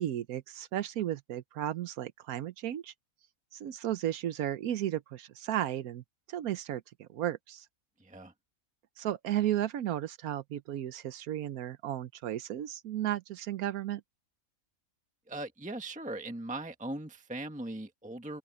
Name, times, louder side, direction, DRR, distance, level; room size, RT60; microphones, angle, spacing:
voice 1, 0.0-2.9 3.5-6.0 6.3-7.7 9.0-14.0, right 12 dB, 85° right, 1.2 m, -34 dB
voice 2, 8.0-8.3 15.3-18.4, right 2 dB, 5° right, 1.3 m, -39 dB
open air
omnidirectional pair, 1.5 m